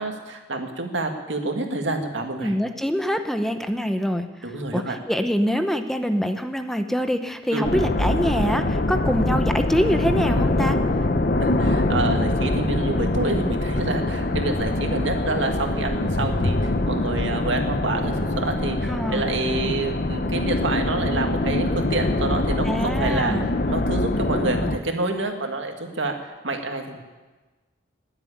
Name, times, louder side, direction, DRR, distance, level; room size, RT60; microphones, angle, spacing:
voice 1, 0.0-2.5 4.4-5.0 7.5-7.8 11.4-23.4 23.7-27.0, right 2 dB, 85° right, 4 dB, 2.1 m, -28 dB
voice 2, 2.4-4.3 4.7-10.8 18.8-19.3 22.6-23.5, equal, ahead, 7 dB, 0.7 m, -24 dB
sound 1, 7.6-24.8, left 2 dB, 50° left, 0.9 m, -24 dB
20.5 x 8.0 x 8.6 m, 1.3 s
head